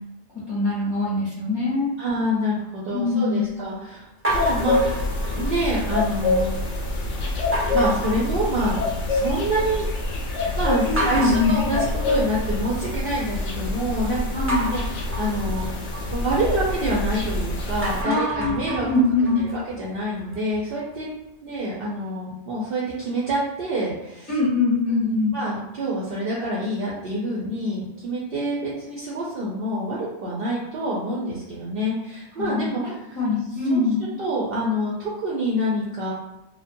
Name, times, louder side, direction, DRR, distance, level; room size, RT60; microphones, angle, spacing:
voice 1, 0.5-1.9 2.9-3.5 10.9-11.7 14.3-14.7 18.0-19.5 24.3-25.3 32.4-32.7 33.2-34.1, left 3 dB, 25° left, -8 dB, 0.7 m, -23 dB
voice 2, 2.0-6.5 7.7-8.8 9.1-9.9 10.6-14.2 14.7-15.6 16.1-18.9 19.4-21.1 21.4-24.3 24.9-32.8 33.7-33.8 34.2-36.1, right 1 dB, 60° right, -5 dB, 0.7 m, -27 dB
sound 1, 4.2-5.7 6.1-6.6 7.5-9.0 9.4-9.9 10.3-10.4 11.0-13.1 14.5-17.3 17.7-20.6, right 1 dB, 15° right, 0.5 m, -31 dB
sound 2, 4.3-18.0, left 2 dB, 80° left, 0.9 m, -26 dB
2.6 x 2.1 x 2.6 m, 0.96 s
omnidirectional pair, 1.2 m